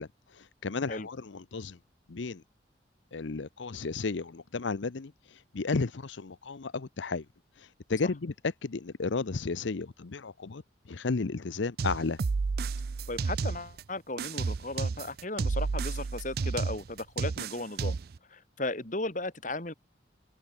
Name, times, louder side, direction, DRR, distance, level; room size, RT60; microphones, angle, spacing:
voice 1, 0.0-1.8 2.1-2.4 3.1-7.3 7.6-8.3 8.6-12.2, left 4 dB, 75° left, 0.7 m, -33 dB
sound 1, 11.8-13.8 14.2-18.2, right 4 dB, 55° right, 0.4 m, -31 dB
voice 2, 13.1-18.0 18.3-19.7, left 2 dB, 40° left, 2.6 m, -36 dB
head